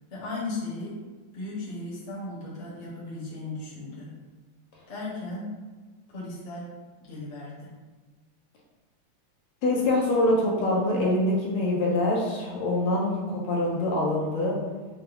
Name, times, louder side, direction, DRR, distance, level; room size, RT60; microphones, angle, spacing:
voice 1, 0.1-1.0 1.3-4.1 4.9-5.5 6.1-6.7 7.0-7.7, left 2 dB, 40° left, -6 dB, 1.1 m, -36 dB
voice 2, 9.6-14.6, left 1 dB, 75° left, -3 dB, 1.5 m, -24 dB
4.5 x 2.3 x 3.4 m, 1.3 s
omnidirectional pair, 2.4 m